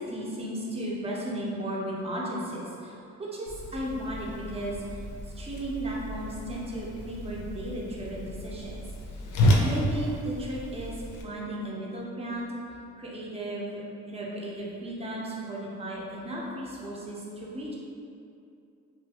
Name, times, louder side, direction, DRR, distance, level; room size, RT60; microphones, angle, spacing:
voice 1, 0.0-4.8 5.4-8.8 9.6-10.9 11.2-12.5 13.0-17.7, right 1 dB, 20° right, -4 dB, 0.5 m, -35 dB
Whoosh swoosh swish, 3.5-11.2, left 1 dB, 90° left, 0.5 m, -31 dB
2.7 x 2.4 x 2.8 m, 2.6 s
cardioid pair, 90°, 30 cm